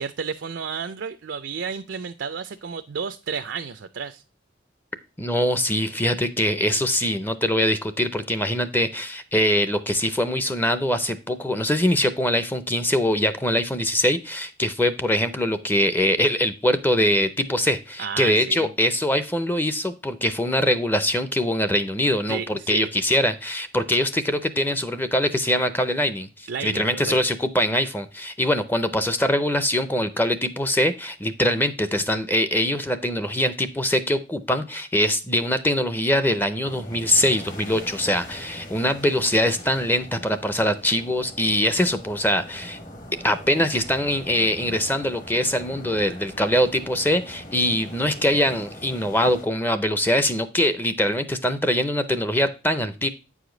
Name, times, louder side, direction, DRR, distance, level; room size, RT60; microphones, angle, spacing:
voice 1, 0.0-4.2 18.0-18.7 22.3-22.9 26.5-27.1, right 6 dB, 75° right, 9 dB, 0.5 m, -32 dB
voice 2, 5.2-42.8 43.2-53.1, left 1 dB, 10° left, 12 dB, 0.5 m, -23 dB
sound 1, 36.7-49.5, left 1 dB, 45° left, 1.4 m, -41 dB
8.7 x 4.9 x 3.8 m, 0.31 s
head